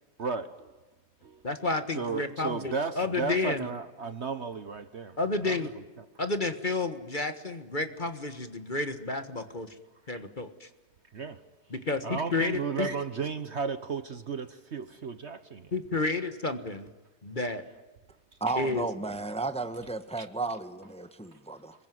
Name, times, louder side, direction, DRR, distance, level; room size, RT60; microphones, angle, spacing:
voice 1, 0.2-0.6 1.2-1.4 1.9-5.2 5.4-5.7 11.1-11.4 12.0-15.7 20.2-20.3, right 5 dB, 50° right, 1.2 m, -34 dB
voice 2, 1.4-3.7 5.2-5.7 6.2-9.7 10.1-10.7 11.7-12.9 15.7-16.9 17.2-17.6 18.6-18.9, left 3 dB, 30° left, 1.5 m, -31 dB
voice 3, 18.4-21.7, right 3 dB, 5° left, 1.1 m, -33 dB
26.0 x 22.0 x 9.4 m
omnidirectional pair, 1.7 m